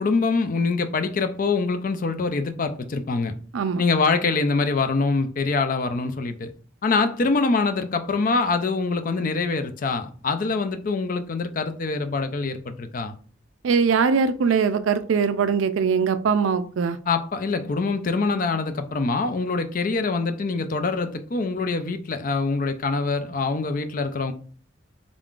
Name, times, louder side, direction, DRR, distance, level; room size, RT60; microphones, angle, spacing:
voice 1, 0.0-3.4 3.8-6.5 6.8-13.2 17.1-24.3, left 4 dB, 45° left, 0.4 m, -24 dB
voice 2, 13.6-17.0, right 5 dB, 85° right, 0.4 m, -21 dB
3.7 x 3.6 x 2.4 m
head